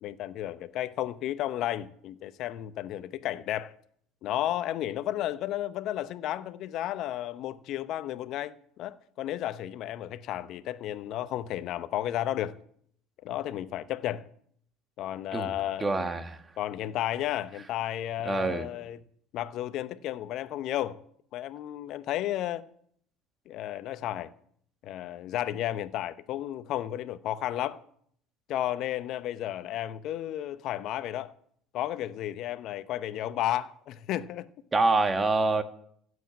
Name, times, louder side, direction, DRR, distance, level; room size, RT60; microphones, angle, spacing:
voice 1, 0.0-3.7 4.2-12.6 13.2-14.3 15.0-15.9 16.6-19.0 19.3-21.0 21.3-22.7 23.5-24.3 24.8-27.8 28.5-31.3 31.7-34.5, left 12 dB, 60° left, 0.8 m, -33 dB
voice 2, 15.8-16.4 18.2-18.7 34.7-35.6, right 3 dB, 25° right, 1.7 m, -26 dB
14.5 x 8.1 x 8.3 m
hypercardioid pair, 70°, 0 cm